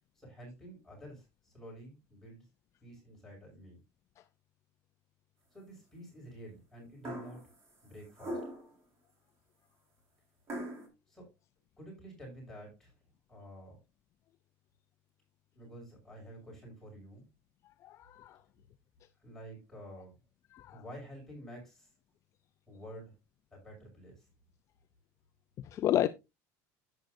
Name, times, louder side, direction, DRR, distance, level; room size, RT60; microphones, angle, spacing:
voice 1, 0.1-2.5 2.8-3.8 5.5-7.4 7.8-8.4 11.1-11.2 11.8-12.9 13.3-13.8 15.5-17.2 19.2-20.2 20.7-21.9 22.7-23.1 23.5-24.3, equal, 5° left, 6.3 m, -50 dB
sound 1, 7.0-7.5 8.2-8.7 10.5-10.9, equal, 35° right, 4.2 m, -40 dB
voice 2, 17.8-18.4 20.5-20.8 25.6-26.1, left 12 dB, 40° left, 0.5 m, -31 dB
11.0 x 9.1 x 2.6 m
cardioid pair, 145°, 8 cm